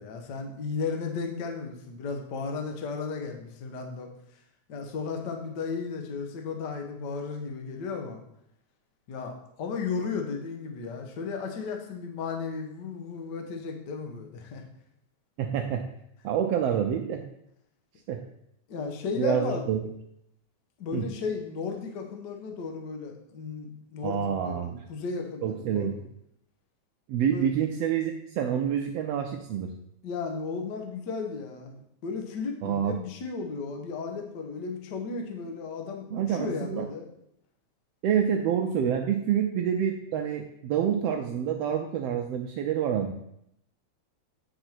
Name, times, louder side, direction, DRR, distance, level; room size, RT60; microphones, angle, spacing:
voice 1, 0.0-4.1 4.7-8.2 9.1-14.6 18.7-19.6 20.8-26.0 27.3-27.5 30.0-37.1, left 4 dB, 60° left, 3 dB, 1.1 m, -34 dB
voice 2, 15.4-15.8 16.2-17.2 18.1-18.2 19.2-19.8 20.9-21.0 24.0-24.8 25.4-26.0 27.1-29.7 32.6-33.0 36.1-36.8 38.0-43.1, right 8 dB, 80° right, 4 dB, 1.4 m, -27 dB
8.8 x 5.0 x 4.4 m, 0.76 s
omnidirectional pair, 3.4 m